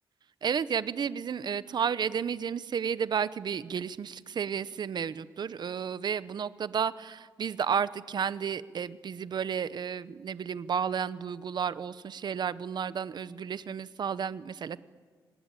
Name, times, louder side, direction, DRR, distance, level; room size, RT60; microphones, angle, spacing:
voice 1, 0.4-14.8, right 7 dB, 55° right, 16 dB, 0.9 m, -32 dB
26.0 x 19.5 x 9.1 m, 1.5 s
cardioid pair, 120°, 9 cm